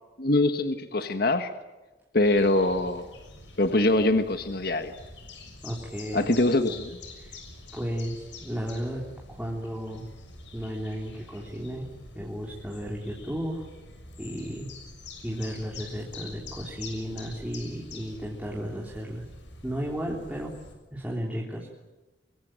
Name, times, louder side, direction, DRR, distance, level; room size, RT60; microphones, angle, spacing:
voice 1, 0.2-1.5 2.1-3.0 3.6-4.9 6.1-7.0, left 2 dB, 55° left, 8 dB, 1.5 m, -23 dB
sound 1, 2.2-20.7, left 3 dB, 85° left, 6.7 m, -46 dB
voice 2, 5.6-6.3 7.2-7.4 7.7-9.0 9.3-10.1 10.5-11.9 12.2-13.6 14.2-14.7 15.2-19.3 19.6-20.5 20.9-21.7, equal, 5° right, -3 dB, 3.5 m, -34 dB
24.5 x 23.5 x 8.9 m, 1.1 s
head